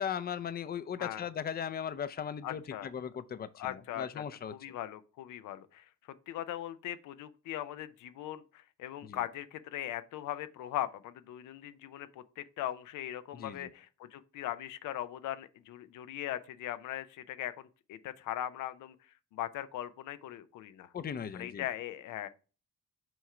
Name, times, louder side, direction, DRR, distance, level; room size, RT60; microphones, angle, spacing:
voice 1, 0.0-4.5 9.0-9.2 13.3-13.7 20.9-21.6, left 8 dB, 30° left, 0.5 m, -38 dB
voice 2, 2.4-2.9 3.6-4.2 4.5-5.9 6.3-19.0 19.3-20.9 21.3-22.3, left 12 dB, 80° left, 0.6 m, -40 dB
6.1 x 3.7 x 4.3 m
cardioid pair, 90°, 30 cm